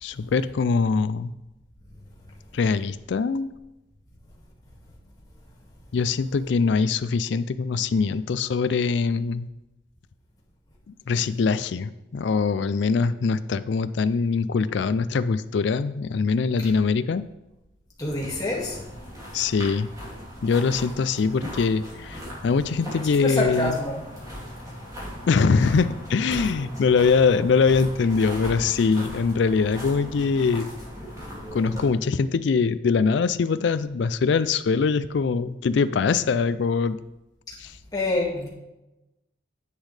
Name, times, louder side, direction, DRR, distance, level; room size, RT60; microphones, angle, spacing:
voice 1, 0.0-1.3 2.5-3.5 5.9-9.5 10.9-17.2 19.3-19.9 20.4-23.8 25.3-30.7 31.5-37.0 37.6-37.8, left 5 dB, 65° left, 14 dB, 0.4 m, -23 dB
voice 2, 18.0-18.8 23.2-24.0 37.9-38.5, left 2 dB, 20° left, -4 dB, 2.0 m, -26 dB
sound 1, 18.1-31.9, equal, 20° right, 3.1 m, -38 dB
9.9 x 8.2 x 3.3 m, 0.98 s
head